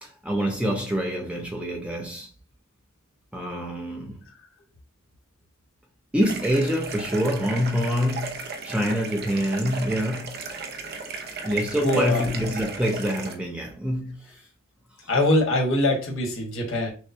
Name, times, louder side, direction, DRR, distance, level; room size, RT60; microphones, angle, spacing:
voice 1, 0.0-2.3 3.3-4.2 6.1-10.4 11.4-14.2 15.0-15.1, equal, 5° right, 0.6 m, -26 dB
sound 1, 6.2-13.4, right 4 dB, 45° right, 0.6 m, -35 dB
voice 2, 11.8-12.2 15.1-16.9, left 1 dB, 65° left, 1.3 m, -23 dB
6.3 x 2.2 x 2.7 m
head